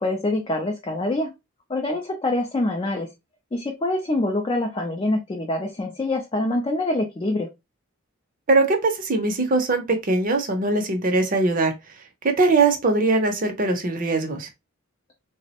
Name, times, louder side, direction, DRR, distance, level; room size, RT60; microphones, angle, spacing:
voice 1, 0.0-1.3 1.7-3.1 3.5-7.5, left 2 dB, 25° left, 0.3 m, -25 dB
voice 2, 8.5-11.7 12.2-14.5, right 3 dB, 40° right, 0.5 m, -21 dB
3.3 x 2.0 x 2.8 m
head